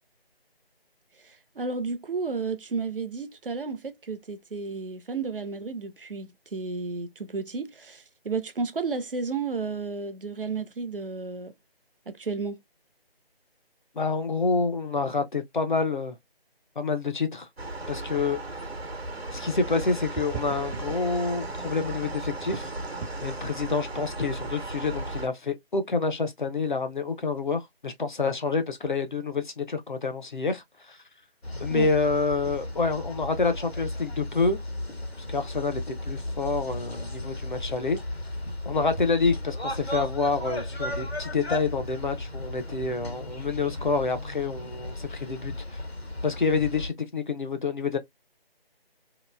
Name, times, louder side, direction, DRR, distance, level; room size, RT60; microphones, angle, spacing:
voice 1, 1.2-11.5 12.1-12.6 31.7-31.9, right 4 dB, 60° right, 0.6 m, -32 dB
voice 2, 14.0-16.2 16.8-17.5 17.9-18.4 19.3-22.7 23.2-31.0 31.6-34.6 35.3-38.0 38.7-45.8 46.2-48.0, left 4 dB, 50° left, 0.6 m, -28 dB
sound 1, 17.6-25.3, right 2 dB, 85° right, 0.9 m, -35 dB
sound 2, 20.1-38.6, right 6 dB, ahead, 0.5 m, -50 dB
sound 3, 31.4-46.9, left 1 dB, 85° left, 1.3 m, -35 dB
2.9 x 2.5 x 2.2 m
figure-of-eight pair, 155°, 31 cm